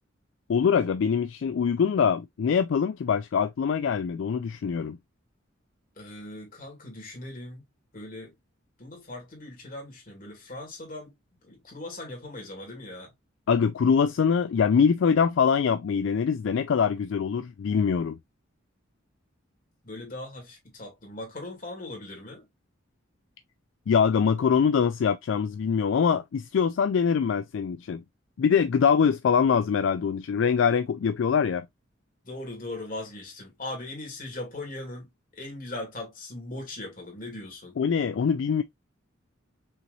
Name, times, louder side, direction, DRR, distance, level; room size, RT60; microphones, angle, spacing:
voice 1, 0.5-5.0 13.5-18.2 23.9-28.0 28.4-31.7 37.8-38.6, left 6 dB, 65° left, 0.3 m, -23 dB
voice 2, 6.0-7.6 7.9-8.3 8.8-11.1 11.4-13.1 19.8-22.5 32.2-37.8, left 2 dB, 45° left, 2.2 m, -39 dB
5.5 x 3.1 x 2.4 m
head